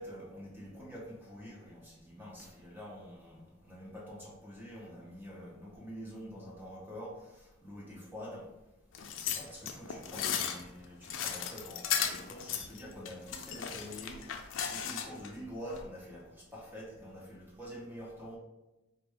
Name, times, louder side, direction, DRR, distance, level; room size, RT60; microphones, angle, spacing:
voice 1, 0.0-8.5 9.3-18.4, equal, 10° right, -4 dB, 0.9 m, -46 dB
sound 1, 8.9-15.3 15.7-15.8, left 8 dB, 85° left, 0.4 m, -36 dB
4.3 x 2.5 x 3.4 m, 0.99 s
head